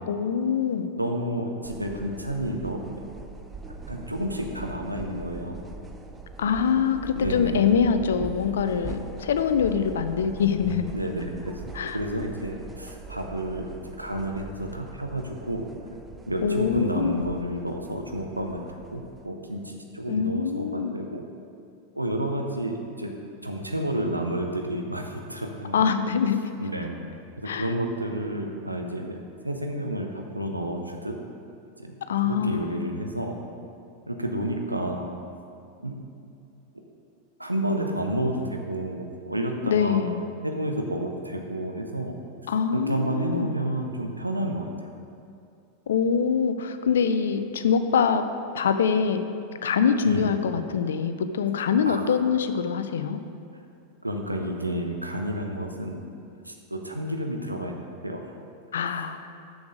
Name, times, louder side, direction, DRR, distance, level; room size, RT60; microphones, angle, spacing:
voice 1, 0.1-0.9 6.4-10.9 11.7-12.0 16.4-17.2 20.1-20.9 25.7-26.5 27.5-27.7 32.1-33.0 39.7-40.2 42.5-43.5 45.9-48.2 48.5-49.3 49.6-53.2 58.7-59.2, left 6 dB, 65° left, 9 dB, 0.4 m, -24 dB
voice 2, 0.9-2.8 3.9-5.6 7.1-7.6 10.9-11.6 11.9-15.7 16.3-21.2 21.9-23.1 23.4-25.8 26.6-27.0 27.4-29.2 29.4-31.1 31.8-31.9 32.2-33.3 34.1-35.1 35.8-36.2 37.4-40.0 40.4-42.2 42.7-44.9 50.0-50.3 51.9-52.0 54.0-56.0 56.4-57.8 58.0-58.3, right 1 dB, 85° right, 3 dB, 0.8 m, -30 dB
sound 1, 1.6-19.3, right 4 dB, 15° right, 0.5 m, -42 dB
7.0 x 6.3 x 5.0 m, 2.5 s
figure-of-eight pair, 90°, 0 cm